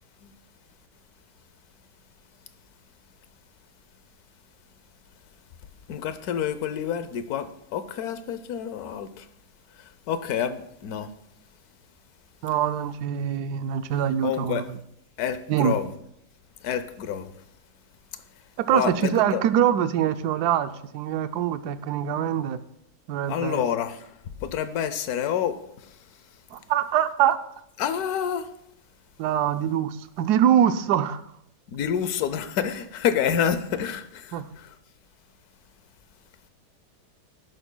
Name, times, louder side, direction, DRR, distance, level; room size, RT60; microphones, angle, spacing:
voice 1, 5.9-9.3 10.1-11.1 14.2-14.6 15.2-15.9 16.6-17.3 18.7-19.4 23.3-24.1 24.4-25.9 27.8-28.5 31.7-34.7, left 8 dB, 70° left, 11 dB, 1.2 m, -28 dB
voice 2, 12.4-14.6 15.5-15.8 18.6-22.6 23.1-23.6 26.5-27.4 29.2-31.2 34.3-34.5, right 10 dB, 75° right, 11 dB, 1.1 m, -24 dB
12.0 x 11.0 x 2.2 m, 0.76 s
omnidirectional pair, 1.8 m